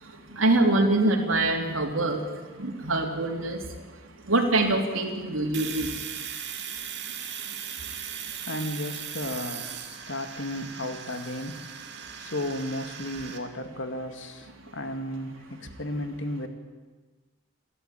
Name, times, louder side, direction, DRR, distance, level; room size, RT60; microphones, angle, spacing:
voice 1, 0.0-3.8 4.3-6.0 7.0-7.2 7.5-7.9 8.3-8.4, right 2 dB, 85° right, 3 dB, 3.4 m, -25 dB
Domestic sounds home sounds, 5.5-13.4, right 8 dB, 55° right, 2.6 m, -38 dB
voice 2, 8.5-9.8 10.1-11.6 12.2-14.5 14.7-16.5, left 1 dB, 70° left, 6 dB, 2.3 m, -33 dB
28.5 x 12.5 x 9.2 m, 1.4 s
head